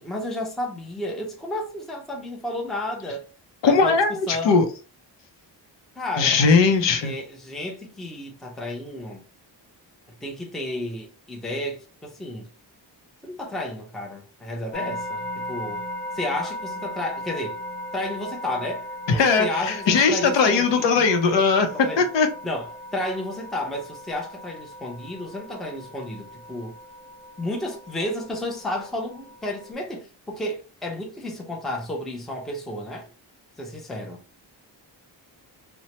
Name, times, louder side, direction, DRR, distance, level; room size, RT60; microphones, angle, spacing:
voice 1, 0.0-3.2 3.6-4.0 4.3-4.6 6.0-6.7 7.0-9.2 10.2-12.5 13.2-15.8 16.1-17.6 17.9-20.9 21.6-22.1 22.4-26.7 27.4-33.1 33.6-34.2, left 1 dB, ahead, 0.4 m, -32 dB
voice 2, 3.6-4.7 6.2-7.1 19.1-21.7 22.0-22.3, left 4 dB, 75° left, 0.7 m, -19 dB
sound 1, 14.7-29.7, left 1 dB, 25° left, 0.8 m, -37 dB
3.0 x 2.1 x 2.8 m
wide cardioid pair, 160°, 44 cm